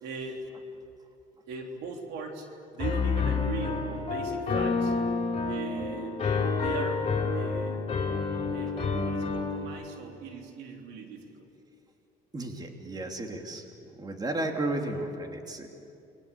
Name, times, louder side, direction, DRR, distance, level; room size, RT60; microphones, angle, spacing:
voice 1, 0.0-0.4 1.5-2.5 2.7-4.9 5.4-6.2 6.6-7.0 7.3-7.9 8.5-11.5, right 4 dB, 90° right, 2 dB, 3.6 m, -39 dB
Piano, 2.8-9.6, left 4 dB, 35° left, 4.7 m, -29 dB
voice 2, 12.3-13.7 14.0-15.7, right 2 dB, 25° right, 3 dB, 3.0 m, -33 dB
29.5 x 22.0 x 8.7 m, 2.6 s
cardioid pair, 110°, 17 cm